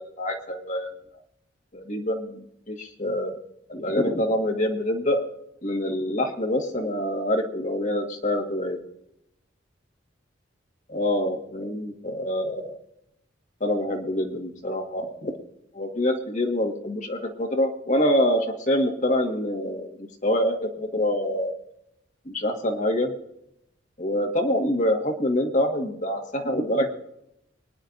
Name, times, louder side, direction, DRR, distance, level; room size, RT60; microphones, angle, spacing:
voice 1, 0.2-0.9 1.7-3.3 3.7-5.2 5.6-8.8 10.9-12.8 13.6-15.4 15.7-21.5 22.3-23.1 24.0-26.9, left 1 dB, 40° left, 2 dB, 1.8 m, -26 dB
25.5 x 10.5 x 2.7 m, 0.79 s
head